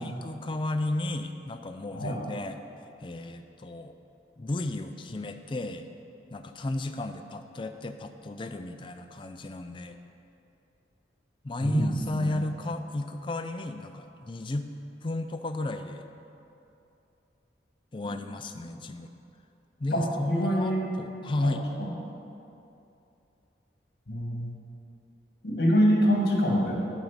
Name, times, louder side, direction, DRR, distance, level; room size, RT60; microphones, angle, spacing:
voice 1, 0.0-2.6 3.0-3.9 4.4-5.9 6.3-10.0 11.4-14.7 15.0-16.1 17.9-19.1 19.8-21.6, left 2 dB, 25° left, 7 dB, 0.4 m, -33 dB
voice 2, 19.9-20.9 21.4-21.9 24.1-24.5 25.4-26.8, equal, 55° left, -2 dB, 1.6 m, -25 dB
7.4 x 5.1 x 7.2 m, 2.8 s
head